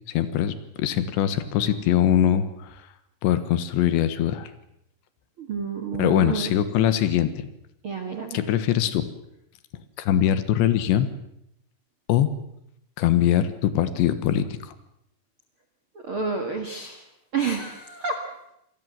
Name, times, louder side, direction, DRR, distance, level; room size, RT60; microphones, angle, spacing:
voice 1, 0.1-2.8 3.2-4.5 6.0-7.5 8.3-9.1 10.0-11.1 12.1-12.3 13.0-14.7, left 11 dB, 75° left, 13 dB, 3.5 m, -22 dB
voice 2, 5.4-6.5 7.8-8.4 15.9-17.0 17.3-18.2, right 5 dB, 50° right, 6 dB, 1.6 m, -29 dB
27.0 x 19.0 x 7.6 m, 0.79 s
omnidirectional pair, 5.3 m